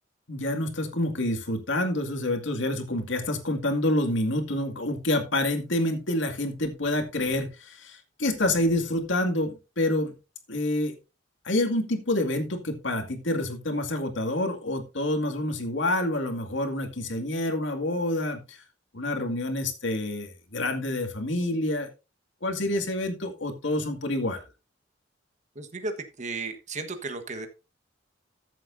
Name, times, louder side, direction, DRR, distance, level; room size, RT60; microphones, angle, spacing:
voice 1, 0.3-10.1 10.5-10.9 11.4-18.6 18.9-21.9 22.4-24.4, left 1 dB, 75° left, 5 dB, 2.2 m, -27 dB
voice 2, 25.5-27.5, right 3 dB, 40° right, 7 dB, 1.3 m, -34 dB
14.0 x 7.5 x 2.7 m, 0.29 s
head